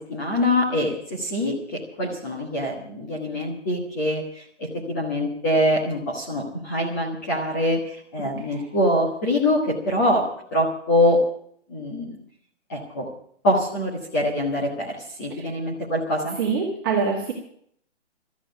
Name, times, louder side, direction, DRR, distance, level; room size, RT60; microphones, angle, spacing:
voice 1, 0.1-10.2 10.5-11.2 11.7-12.1 12.7-13.1 13.4-16.4, left 1 dB, 15° left, -2 dB, 1.4 m, -24 dB
voice 2, 16.4-17.3, right 5 dB, 20° right, -4 dB, 1.9 m, -25 dB
13.0 x 9.2 x 9.1 m, 0.64 s
hypercardioid pair, 175°, 36 cm